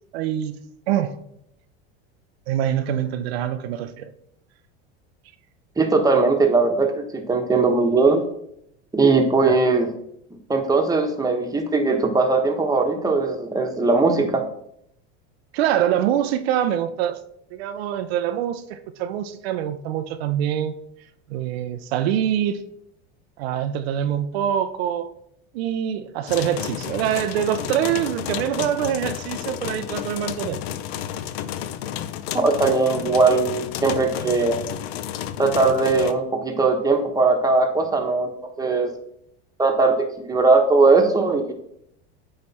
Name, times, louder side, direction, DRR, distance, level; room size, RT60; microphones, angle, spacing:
voice 1, 0.1-0.6 0.9-1.1 2.5-4.1 9.4-9.6 15.5-17.2 17.5-20.8 21.3-22.6 23.4-25.1 25.5-30.6, right 10 dB, 80° right, 0.6 m, -24 dB
voice 2, 5.8-8.2 8.9-9.9 10.5-14.4 32.3-34.6 35.4-38.3 38.6-38.9 39.6-41.5, right 3 dB, 10° right, 1.1 m, -19 dB
sound 1, 26.3-36.1, left 10 dB, 80° left, 0.6 m, -31 dB
8.7 x 3.2 x 4.1 m
supercardioid pair, 105°, 31 cm